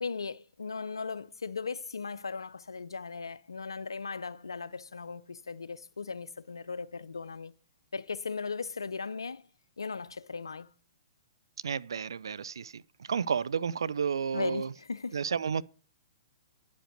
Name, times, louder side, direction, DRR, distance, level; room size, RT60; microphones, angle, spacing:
voice 1, 0.0-7.5 7.9-9.5 9.8-10.7 14.3-15.2, left 4 dB, 90° left, 0.5 m, -37 dB
voice 2, 11.6-14.7 15.1-15.6, right 6 dB, 80° right, 0.4 m, -31 dB
9.9 x 5.2 x 6.4 m
hypercardioid pair, 125°, 2 cm